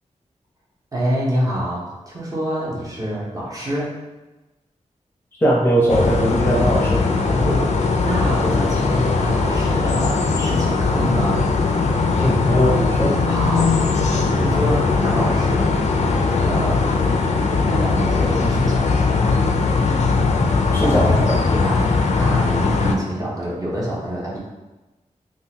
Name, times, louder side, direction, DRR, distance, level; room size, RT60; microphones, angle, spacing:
voice 1, 0.9-4.0 7.2-11.5 13.3-13.8 14.3-15.7 16.2-16.9 17.5-19.2 20.8-24.4, equal, 25° right, -5 dB, 0.8 m, -26 dB
voice 2, 5.4-7.0 12.2-13.2 20.7-21.4, equal, 15° left, -5 dB, 0.6 m, -19 dB
sound 1, 5.9-22.9, left 4 dB, 65° left, 0.4 m, -19 dB
3.6 x 2.4 x 2.8 m, 1.1 s
wide cardioid pair, 120°, 13 cm